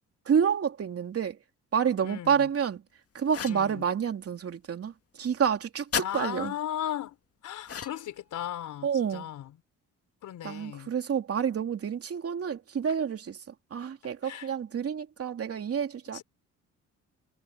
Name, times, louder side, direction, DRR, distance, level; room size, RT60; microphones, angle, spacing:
voice 1, 0.3-1.4 1.7-2.8 3.1-4.9 5.2-6.5 8.8-9.3 10.4-13.4 13.7-16.2, right 7 dB, 50° right, 3.2 m, -28 dB
voice 2, 2.0-2.5 3.5-3.9 6.0-7.2 7.4-9.6 10.2-10.9 14.2-14.5 16.1-16.2, left 11 dB, 75° left, 4.4 m, -36 dB
sound 1, 3.3-3.7 5.9-6.1 7.6-8.1, left 8 dB, 50° left, 2.0 m, -33 dB
cardioid pair, 90°, 30 cm